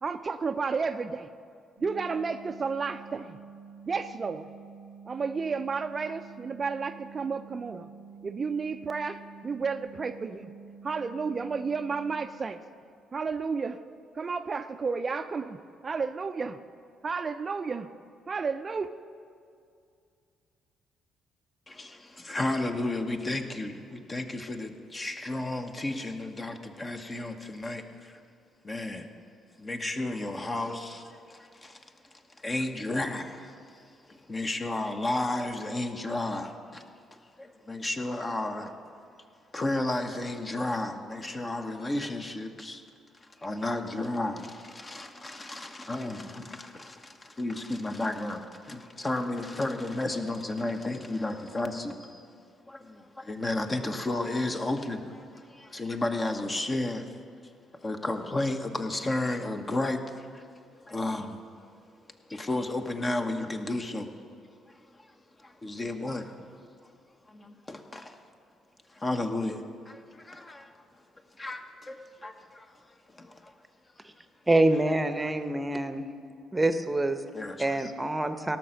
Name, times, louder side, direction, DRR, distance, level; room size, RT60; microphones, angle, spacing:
voice 1, 0.0-1.3 1.8-3.4 3.9-4.5 5.1-7.9 8.2-10.5 10.8-12.6 13.1-13.8 14.1-16.6 17.0-17.9 18.3-18.9, right 5 dB, 40° right, 0.5 m, -32 dB
sound 1, 1.8-12.3, right 6 dB, 50° left, 3.3 m, -48 dB
voice 2, 21.7-28.2 28.6-29.1 29.6-38.7 39.5-42.8 43.2-52.3 52.7-57.2 57.8-60.5 60.8-61.4 62.1-64.2 64.7-65.1 65.4-66.6 67.3-68.2 68.9-70.8 71.3-73.5 77.3-77.9, left 2 dB, 30° left, 1.1 m, -33 dB
voice 3, 74.5-76.1 76.5-77.2 77.6-78.6, right 2 dB, 15° right, 0.9 m, -26 dB
17.5 x 5.9 x 6.5 m
hypercardioid pair, 50°, 0 cm